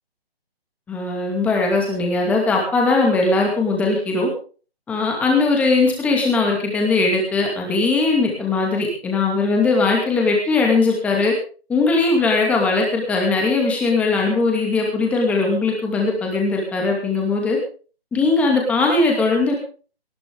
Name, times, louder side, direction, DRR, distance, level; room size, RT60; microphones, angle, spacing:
voice 1, 0.9-4.3 4.9-11.3 11.7-17.6 18.1-19.5, left 3 dB, 5° left, 0 dB, 2.5 m, -19 dB
19.5 x 15.5 x 3.7 m, 0.39 s
hypercardioid pair, 170°, 31 cm